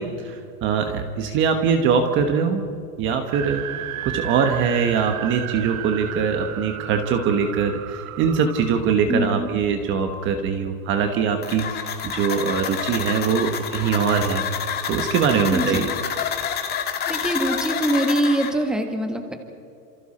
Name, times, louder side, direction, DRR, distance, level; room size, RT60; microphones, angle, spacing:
voice 1, 0.0-2.6 3.0-3.6 4.0-14.5 14.9-15.9, right 6 dB, 25° right, 6 dB, 1.3 m, -22 dB
sound 1, 3.3-8.8, right 13 dB, 60° right, 1.3 m, -34 dB
voice 2, 9.1-9.5 15.5-15.9 17.1-19.3, right 1 dB, ahead, 4 dB, 1.6 m, -23 dB
sound 2, 11.4-18.5, left 7 dB, 20° left, 1.8 m, -28 dB
29.0 x 27.5 x 4.3 m, 2.4 s
supercardioid pair, 170°, 47 cm